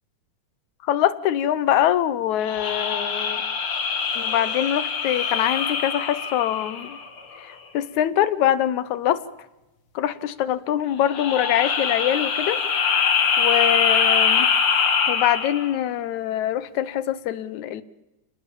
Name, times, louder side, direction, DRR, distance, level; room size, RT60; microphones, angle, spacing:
voice 1, 0.8-3.4 4.2-7.0 7.4-9.2 10.0-12.6 13.4-14.5 15.1-17.8, left 11 dB, 75° left, 16 dB, 2.3 m, -24 dB
sound 1, 2.4-7.2 11.0-15.7, left 6 dB, 50° left, 2.6 m, -23 dB
30.0 x 19.0 x 7.3 m, 0.98 s
omnidirectional pair, 3.5 m